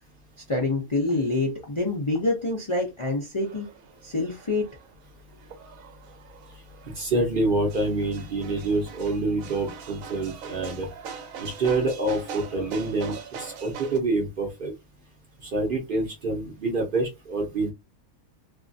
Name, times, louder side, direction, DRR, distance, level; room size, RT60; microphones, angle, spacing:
voice 1, 0.5-3.7 4.0-4.7, left 2 dB, 45° left, -1 dB, 0.4 m, -26 dB
sound 1, 3.4-14.0, right 6 dB, 75° right, 1.0 m, -42 dB
voice 2, 6.9-10.9 11.4-14.7 15.4-17.7, right 2 dB, 45° right, 1 dB, 0.8 m, -27 dB
2.6 x 2.4 x 2.5 m, 0.23 s
omnidirectional pair, 1.5 m